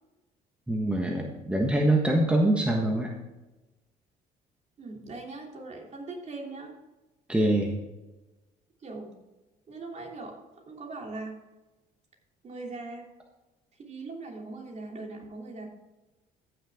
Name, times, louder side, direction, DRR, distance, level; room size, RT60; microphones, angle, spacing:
voice 1, 0.7-3.1 7.3-7.8, right 1 dB, 5° right, 0 dB, 1.4 m, -24 dB
voice 2, 4.8-6.7 8.8-9.2 9.7-10.4 10.7-11.4 12.4-13.0 13.8-15.7, right 3 dB, 40° right, 0 dB, 3.0 m, -40 dB
14.5 x 6.7 x 3.6 m, 1.1 s
cardioid pair, 110°, 17 cm